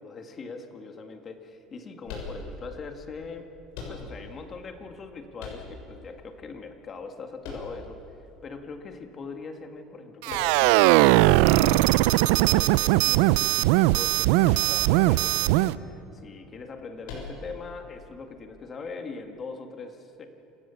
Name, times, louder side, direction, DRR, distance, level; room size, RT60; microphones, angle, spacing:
voice 1, 0.0-3.5 3.9-8.0 8.4-20.3, left 4 dB, 30° left, 5 dB, 1.9 m, -41 dB
sound 1, 2.0-2.8 3.7-4.4 5.4-6.1 7.4-8.2 10.3-10.8 12.4-13.3 14.4-15.0 15.3-15.4 17.0-17.7, left 4 dB, 85° left, 7.0 m, -40 dB
sound 2, 10.2-15.7, right 17 dB, 80° right, 0.5 m, -20 dB
28.0 x 15.0 x 7.1 m, 3.0 s
cardioid pair, 140°, 0 cm